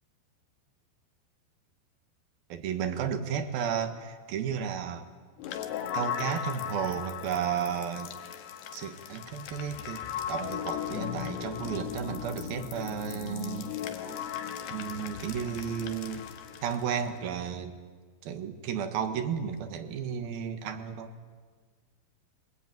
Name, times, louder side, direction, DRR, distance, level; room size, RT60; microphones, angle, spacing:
voice 1, 2.5-5.1 5.9-8.1 8.7-10.0 10.3-13.8 14.7-16.2 16.6-17.8 18.2-21.1, right 7 dB, 65° right, 9 dB, 3.0 m, -33 dB
sound 1, 5.4-17.3, left 9 dB, 75° left, 3.4 m, -37 dB
23.0 x 22.0 x 9.1 m, 1.5 s
omnidirectional pair, 5.0 m